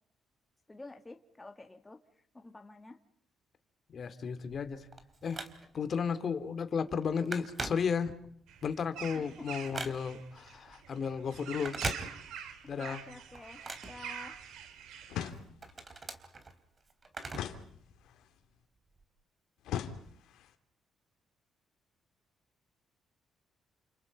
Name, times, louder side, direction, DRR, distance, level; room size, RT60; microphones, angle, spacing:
voice 1, 0.7-2.0 2.3-3.0 9.1-9.5 12.8-13.6 13.9-14.4, left 2 dB, 15° left, 4 dB, 1.9 m, -49 dB
voice 2, 3.9-4.9 5.2-5.4 5.7-8.1 8.6-11.8 12.7-13.0, left 6 dB, 50° left, 10 dB, 2.8 m, -34 dB
Telephone, 4.5-5.9 6.4-6.6 6.9-8.4 8.8-10.3 11.5-12.6 12.9-14.7 15.1-17.7 18.0-18.1 18.9-19.0, right 3 dB, 35° right, 3.8 m, -41 dB
sound 1, 8.5-15.3, right 8 dB, 85° right, 3.2 m, -46 dB
sound 2, 15.1-15.8 17.3-18.3 19.7-20.5, left 10 dB, 85° left, 2.6 m, -40 dB
29.5 x 28.5 x 5.4 m, 0.66 s
cardioid pair, 90°, 0 cm